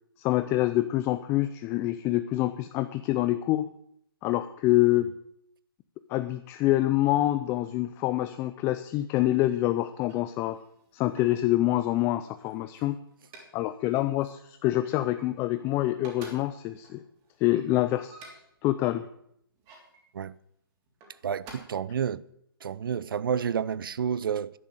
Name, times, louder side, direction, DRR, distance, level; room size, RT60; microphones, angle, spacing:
voice 1, 0.2-3.7 4.2-5.1 6.1-10.6 10.9-13.0 13.5-17.0 17.4-18.3 18.6-19.1, left 15 dB, 20° left, 0.4 m, -26 dB
sound 1, 9.9-11.5 12.1-13.6 13.9-14.2 14.5-15.6 15.9-18.6 19.3-20.0 20.9-21.5, right 3 dB, 25° right, 3.4 m, -50 dB
voice 2, 21.2-22.2 22.6-24.6, right 7 dB, 65° right, 0.6 m, -30 dB
11.0 x 9.3 x 7.9 m
hypercardioid pair, 140°, 12 cm